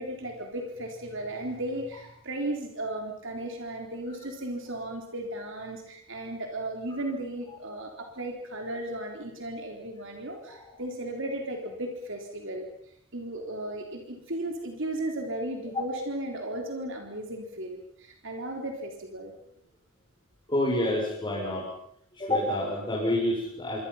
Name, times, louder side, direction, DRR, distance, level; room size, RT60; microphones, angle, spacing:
voice 1, 0.0-12.7 13.1-19.3, right 1 dB, 60° right, 2 dB, 3.8 m, -35 dB
voice 2, 20.5-21.7 22.1-23.8, left 1 dB, 20° left, -4 dB, 6.7 m, -28 dB
27.0 x 25.0 x 5.8 m, 0.70 s
head